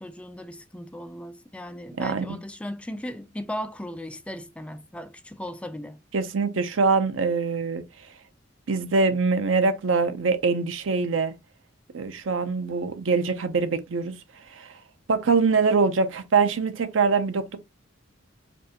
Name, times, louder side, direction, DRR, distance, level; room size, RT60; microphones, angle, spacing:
voice 1, 0.0-6.0, left 1 dB, 5° left, 0.3 m, -37 dB
voice 2, 2.0-2.4 6.1-7.8 8.7-11.3 11.9-14.1 14.5-14.7 15.1-17.6, right 4 dB, 85° right, 0.6 m, -23 dB
5.1 x 2.3 x 2.9 m
head